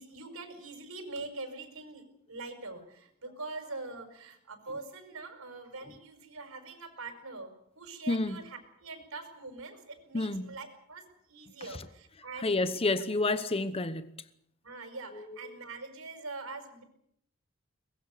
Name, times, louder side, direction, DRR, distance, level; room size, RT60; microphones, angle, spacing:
voice 1, 0.0-7.5 7.8-13.0 14.6-16.8, right 3 dB, 75° right, 5.4 m, -43 dB
voice 2, 8.1-8.4 10.1-10.5 11.6-11.9 12.4-14.1 15.1-15.5, left 2 dB, 25° left, 1.0 m, -30 dB
23.5 x 21.0 x 6.7 m
head